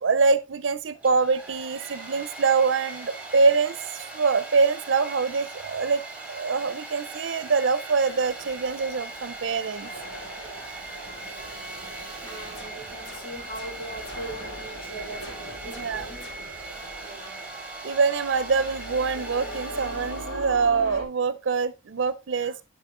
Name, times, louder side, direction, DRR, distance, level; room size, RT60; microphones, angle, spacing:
voice 1, 0.0-6.0 6.3-9.9 15.8-16.1 17.8-22.6, right 4 dB, 75° right, 0.5 m, -24 dB
Domestic sounds home sounds, 0.9-20.5, right 3 dB, 5° right, 2.4 m, -40 dB
sound 1, 7.9-21.0, equal, 85° left, 3.9 m, -41 dB
voice 2, 10.3-10.8 12.2-16.3 17.0-17.5 22.3-22.5, right 1 dB, 30° left, 3.0 m, -41 dB
sound 2, 12.5-14.6 15.2-16.8, left 2 dB, 65° left, 4.1 m, -48 dB
11.5 x 5.2 x 3.7 m
head